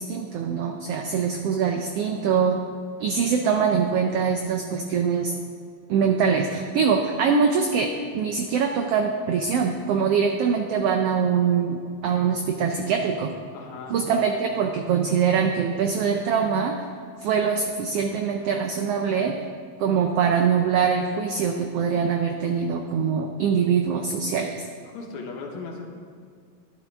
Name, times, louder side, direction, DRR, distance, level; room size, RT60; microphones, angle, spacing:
voice 1, 0.0-2.6 3.0-5.3 5.9-13.3 13.9-16.8 17.2-19.4 19.8-24.6, right 6 dB, 90° right, 4 dB, 1.3 m, -23 dB
voice 2, 13.5-14.0 24.8-25.8, left 4 dB, 75° left, 1 dB, 2.5 m, -37 dB
12.5 x 11.0 x 3.5 m, 2.2 s
omnidirectional pair, 3.4 m